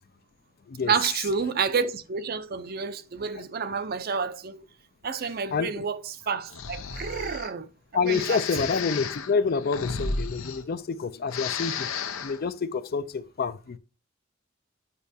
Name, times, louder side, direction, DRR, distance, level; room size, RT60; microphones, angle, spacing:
voice 1, 0.8-4.7 5.0-7.7 8.0-8.7, right 5 dB, 50° right, 0.5 m, -29 dB
voice 2, 5.5-5.8 7.9-13.8, left 5 dB, 50° left, 0.4 m, -28 dB
Breathing, 6.5-7.5 8.1-11.0 11.2-12.4, left 5 dB, 85° left, 0.8 m, -33 dB
8.3 x 5.7 x 2.7 m
head